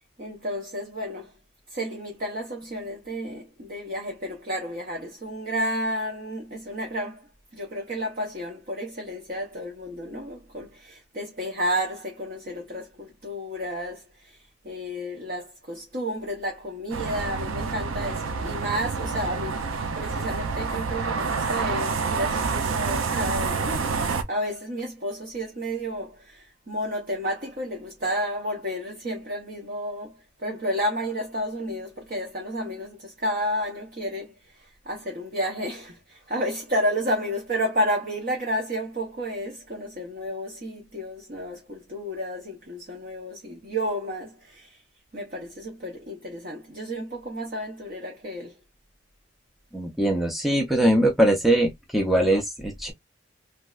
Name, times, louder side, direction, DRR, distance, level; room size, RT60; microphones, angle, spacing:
voice 1, 0.2-1.3 1.7-7.3 7.5-44.8 45.1-48.5, equal, 45° right, 0.8 m, -31 dB
sound 1, 16.9-24.2, right 4 dB, 90° right, 0.5 m, -28 dB
voice 2, 49.7-52.9, right 1 dB, ahead, 0.4 m, -22 dB
3.2 x 2.6 x 2.3 m
head